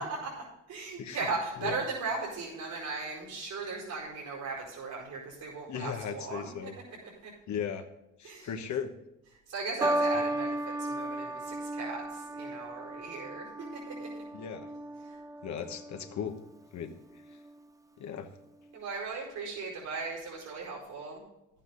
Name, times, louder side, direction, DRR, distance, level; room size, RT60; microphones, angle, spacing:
voice 1, 0.2-7.0 7.2-7.3 8.2-8.5 9.5-14.1 15.0-15.2 18.7-21.2, right 4 dB, 80° right, -5 dB, 4.8 m, -37 dB
voice 2, 5.7-6.7 7.5-7.8 8.2-8.9 14.3-14.7 15.4-16.4 16.7-16.9 18.0-18.3, left 8 dB, 70° left, 5 dB, 1.3 m, -36 dB
sound 1, 9.8-16.3 17.2-17.6, right 1 dB, 10° right, 0.6 m, -35 dB
12.0 x 9.0 x 3.9 m, 0.94 s
cardioid pair, 90°, 30 cm